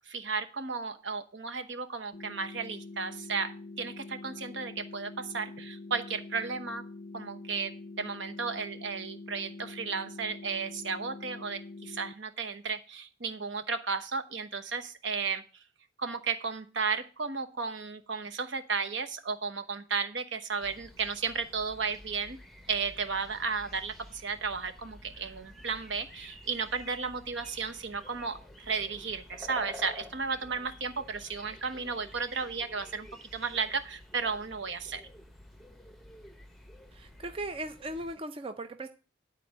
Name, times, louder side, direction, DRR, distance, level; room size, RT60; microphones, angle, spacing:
voice 1, 0.1-6.8 7.1-15.4 16.0-22.4 22.7-33.1 33.3-35.0, right 5 dB, 70° right, 1.0 m, -34 dB
sound 1, 2.1-12.1, left 3 dB, 50° left, 0.5 m, -45 dB
sound 2, 20.6-38.2, left 1 dB, ahead, 0.9 m, -51 dB
voice 2, 36.9-38.9, right 1 dB, 30° right, 0.5 m, -38 dB
11.0 x 4.2 x 7.5 m
head